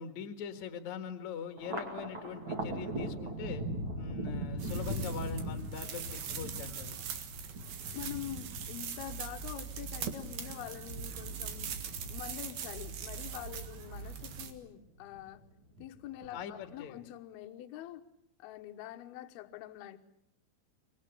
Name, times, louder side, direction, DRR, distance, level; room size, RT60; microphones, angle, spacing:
voice 1, 0.0-3.6 4.0-7.0 16.3-17.1, left 7 dB, 55° left, 7 dB, 2.2 m, -42 dB
Thunder, 1.6-14.2 14.6-15.4 15.8-16.6, right 1 dB, 40° right, 2.0 m, -41 dB
sound 1, 4.6-14.5, right 7 dB, 60° right, 3.0 m, -42 dB
voice 2, 7.9-11.7 12.1-15.4 15.8-18.1 18.4-20.0, left 12 dB, 70° left, 6 dB, 2.5 m, -45 dB
25.0 x 21.5 x 8.3 m, 0.78 s
omnidirectional pair, 5.8 m